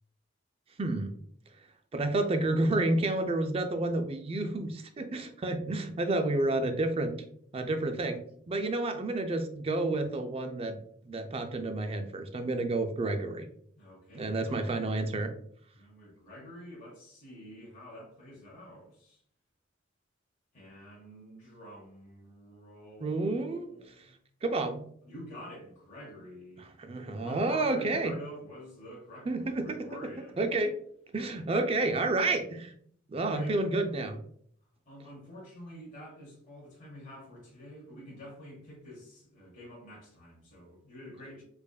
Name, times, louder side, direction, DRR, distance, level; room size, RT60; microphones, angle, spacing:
voice 1, 0.8-1.1 1.9-7.1 7.5-8.2 8.5-10.8 11.0-13.5 14.1-15.3 23.0-23.7 24.4-24.8 26.8-28.1 29.3-29.8 30.4-30.7 31.1-32.7 33.1-34.2, right 2 dB, 30° right, 7 dB, 0.4 m, -30 dB
voice 2, 13.8-14.9 15.7-19.2 20.5-24.2 25.0-26.6 27.1-30.4 33.3-33.6 34.8-41.4, equal, 40° left, -6 dB, 1.3 m, -48 dB
4.8 x 2.5 x 2.3 m, 0.63 s
head